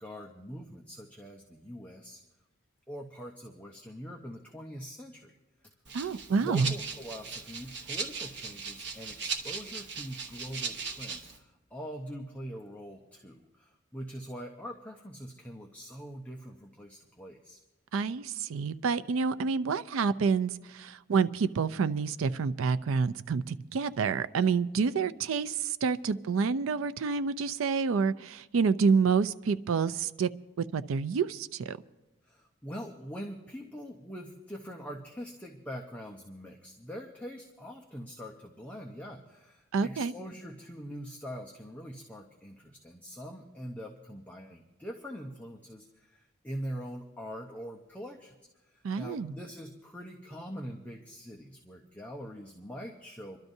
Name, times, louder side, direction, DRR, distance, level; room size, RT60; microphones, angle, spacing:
voice 1, 0.0-2.2 2.9-5.3 6.3-17.6 32.2-48.4 48.7-53.4, equal, 5° left, 0 dB, 0.7 m, -43 dB
Rattle (instrument), 5.8-11.4, right 5 dB, 55° right, 1.1 m, -38 dB
voice 2, 5.9-6.7 17.9-30.3 30.7-31.8 39.7-40.1 48.8-49.3, right 5 dB, 80° right, 14 dB, 0.4 m, -28 dB
27.5 x 12.0 x 2.7 m, 1.1 s
head